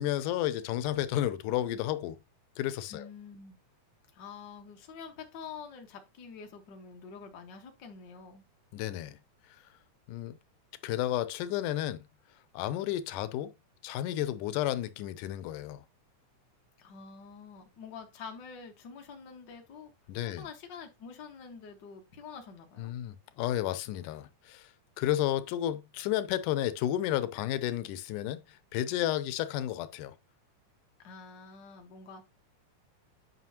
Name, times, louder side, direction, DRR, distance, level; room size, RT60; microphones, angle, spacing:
voice 1, 0.0-2.2 2.6-3.1 8.7-9.2 10.1-10.4 10.8-12.0 12.5-13.5 13.8-15.8 20.1-20.4 22.8-24.7 25.0-30.2, left 12 dB, 90° left, 2.2 m, -32 dB
voice 2, 2.9-3.6 4.1-8.4 16.8-19.9 20.2-22.9 31.0-32.3, left 5 dB, 45° left, 1.6 m, -47 dB
9.3 x 5.6 x 2.8 m
omnidirectional pair, 3.6 m